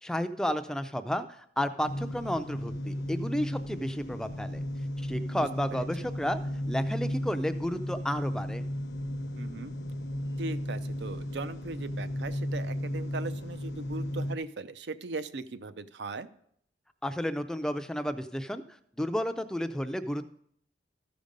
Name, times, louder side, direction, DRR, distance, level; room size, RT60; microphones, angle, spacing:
voice 1, 0.0-4.6 5.0-6.4 6.7-8.6 17.0-18.6 19.0-20.3, equal, 5° left, 10 dB, 0.4 m, -32 dB
sound 1, 1.8-14.4, equal, 60° left, 0.7 m, -35 dB
voice 2, 5.3-6.1 9.4-9.7 10.4-16.3, right 3 dB, 70° right, 12 dB, 0.5 m, -39 dB
13.5 x 5.1 x 5.3 m, 0.67 s
head